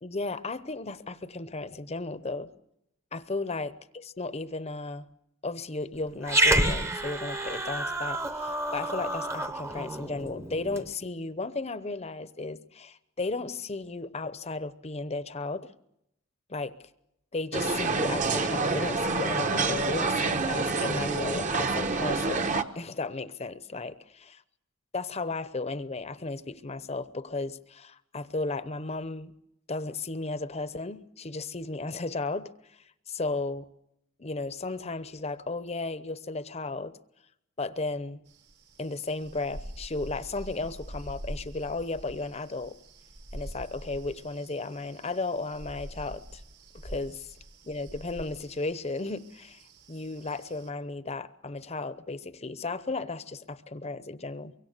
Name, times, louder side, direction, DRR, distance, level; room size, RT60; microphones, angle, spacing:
voice 1, 0.0-2.5 3.1-5.1 5.4-15.7 16.5-16.8 17.3-24.4 24.9-29.3 29.7-32.5 33.1-33.6 34.2-37.0 37.6-38.2 38.8-42.8 43.3-46.4 46.8-47.3 47.6-49.6 49.9-54.5, left 3 dB, 30° left, 14 dB, 0.8 m, -34 dB
Growling, 6.2-10.9, right 1 dB, 15° right, 0.9 m, -29 dB
sound 1, 17.5-22.6, right 3 dB, 35° right, 1.0 m, -27 dB
sound 2, 38.3-50.7, right 1 dB, 50° right, 1.6 m, -45 dB
24.0 x 23.5 x 6.7 m, 0.82 s
head